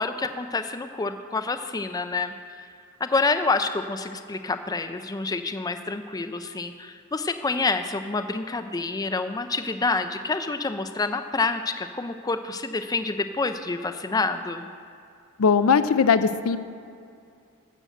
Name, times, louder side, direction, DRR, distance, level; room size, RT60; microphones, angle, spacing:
voice 1, 0.0-2.3 3.0-14.7, left 3 dB, 15° left, 9 dB, 0.4 m, -27 dB
voice 2, 15.4-16.6, left 6 dB, 70° left, 12 dB, 0.5 m, -19 dB
12.5 x 6.5 x 7.7 m, 2.5 s
head